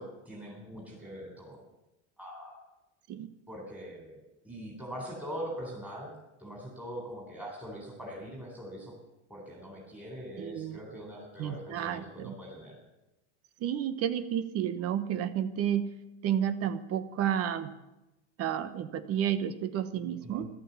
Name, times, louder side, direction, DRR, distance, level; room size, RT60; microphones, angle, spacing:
voice 1, 0.0-1.6 2.2-2.6 3.5-4.2 4.4-8.9 9.3-12.8 20.2-20.5, equal, 5° right, -3 dB, 4.0 m, -42 dB
voice 2, 10.4-10.8 11.4-12.3 13.6-15.9 16.2-17.7 18.4-20.5, right 10 dB, 40° right, 13 dB, 1.1 m, -31 dB
14.5 x 12.0 x 7.1 m, 0.99 s
supercardioid pair, 135°, 37 cm